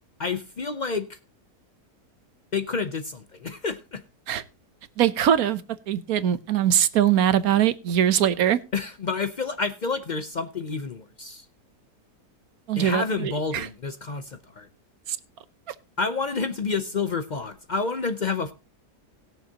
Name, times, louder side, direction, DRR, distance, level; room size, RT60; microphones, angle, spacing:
voice 1, 0.2-1.2 2.5-4.0 8.7-11.5 12.8-14.7 16.0-18.5, left 4 dB, 60° left, 0.4 m, -29 dB
voice 2, 5.0-5.6 5.9-8.6 12.7-13.7 15.1-15.2, right 10 dB, 70° right, 1.2 m, -22 dB
20.0 x 6.9 x 2.8 m
omnidirectional pair, 1.7 m